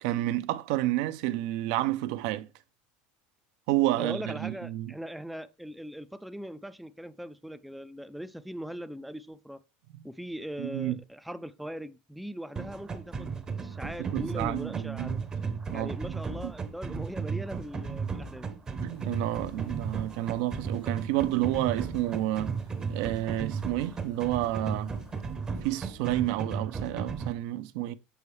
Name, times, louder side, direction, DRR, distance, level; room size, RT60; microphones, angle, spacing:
voice 1, 0.0-2.5 3.7-4.9 10.6-10.9 14.0-15.1 15.7-15.9 16.4-16.5 18.8-22.6 22.9-24.9 25.6-27.9, right 15 dB, 65° right, 0.5 m, -30 dB
voice 2, 4.0-9.6 10.0-15.2 15.7-18.5, equal, ahead, 0.3 m, -40 dB
sound 1, 12.6-27.3, right 5 dB, 20° right, 0.7 m, -35 dB
sound 2, 18.9-25.4, left 7 dB, 80° left, 1.3 m, -57 dB
6.8 x 5.4 x 3.2 m
supercardioid pair, 145°, 4 cm